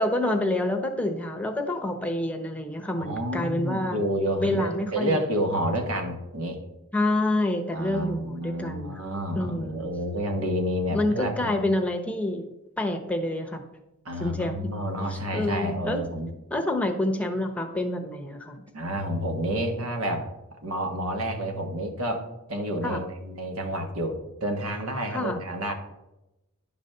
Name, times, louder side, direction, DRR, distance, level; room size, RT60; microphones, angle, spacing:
voice 1, 0.0-4.0 4.4-5.2 6.9-9.0 9.3-9.9 10.9-12.5 12.8-13.6 14.2-14.7 15.3-16.0 16.5-18.7 22.8-23.0 25.1-25.4, left 1 dB, 5° left, 3 dB, 0.9 m, -27 dB
voice 2, 3.0-6.6 7.7-11.5 14.0-16.3 18.7-20.3 20.6-25.7, equal, 75° right, 4 dB, 1.5 m, -29 dB
10.5 x 4.1 x 6.6 m, 0.94 s
head